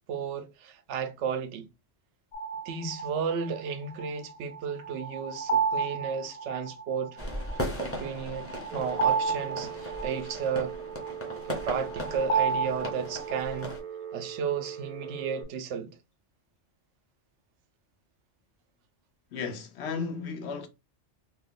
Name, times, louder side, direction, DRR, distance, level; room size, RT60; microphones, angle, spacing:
voice 1, 0.1-1.7 2.7-7.2 7.8-10.7 11.6-13.7 14.1-16.0, right 6 dB, 85° right, 0.9 m, -33 dB
sound 1, 2.3-13.6, right 5 dB, 50° left, 0.3 m, -32 dB
sound 2, 7.2-13.8, equal, 15° left, 0.8 m, -37 dB
Telephone, 8.7-15.4, right 8 dB, 50° right, 0.6 m, -41 dB
voice 2, 19.3-20.7, left 5 dB, 70° left, 0.9 m, -34 dB
3.1 x 2.2 x 3.7 m
omnidirectional pair, 1.2 m